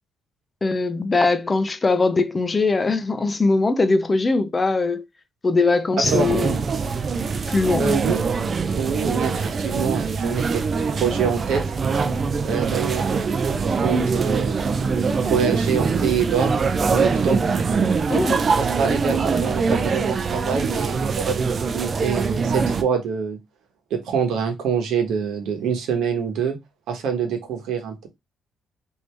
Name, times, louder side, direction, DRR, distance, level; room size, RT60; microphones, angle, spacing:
voice 1, 0.6-5.0 5.4-6.6 7.5-7.9 18.1-18.4, left 3 dB, 30° left, 0.4 m, -21 dB
sound 1, 6.0-22.8, right 5 dB, 45° right, 0.4 m, -23 dB
voice 2, 6.1-6.6 7.7-8.2 8.7-11.6 12.4-14.6 15.2-16.5 16.9-17.5 18.6-21.4 21.7-23.4 23.9-26.6 26.9-28.1, right 6 dB, 80° right, 1.0 m, -25 dB
2.9 x 2.7 x 3.3 m
cardioid pair, 90°, 0 cm